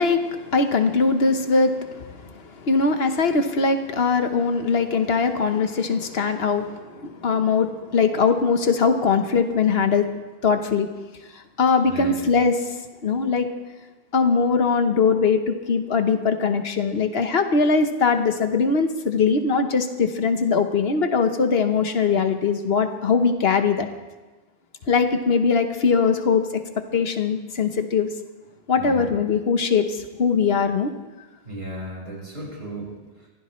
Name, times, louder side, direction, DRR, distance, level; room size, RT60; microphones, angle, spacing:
voice 1, 0.0-10.1 10.4-10.9 11.6-12.7 13.0-13.5 14.1-23.9 24.9-26.6 26.9-28.1 28.7-30.9, left 5 dB, 75° left, 7 dB, 1.3 m, -21 dB
voice 2, 11.8-12.2 28.7-29.1 31.4-32.9, right 1 dB, 80° right, -3 dB, 5.8 m, -35 dB
24.0 x 16.0 x 3.2 m, 1.2 s
omnidirectional pair, 1.1 m